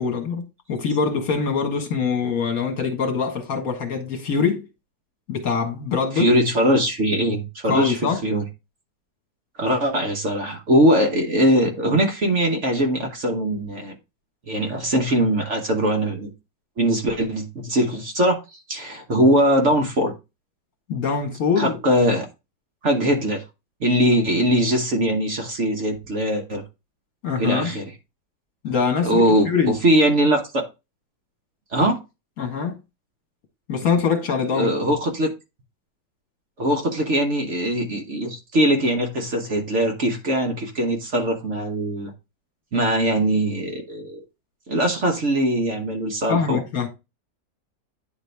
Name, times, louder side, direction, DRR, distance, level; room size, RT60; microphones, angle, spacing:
voice 1, 0.0-4.6 5.3-6.3 7.6-8.2 20.9-21.8 27.2-27.7 28.6-29.7 32.4-32.8 33.7-34.9 46.3-46.9, left 5 dB, 60° left, 1.8 m, -23 dB
voice 2, 6.2-8.4 9.6-14.0 14.5-16.3 16.8-18.4 18.7-20.1 21.6-22.2 22.8-23.4 23.8-26.6 27.4-27.8 29.0-30.6 31.7-32.0 34.5-35.3 36.6-42.1 42.7-44.2 44.7-46.6, right 1 dB, 45° right, 1.3 m, -21 dB
9.4 x 4.0 x 3.3 m
omnidirectional pair, 1.8 m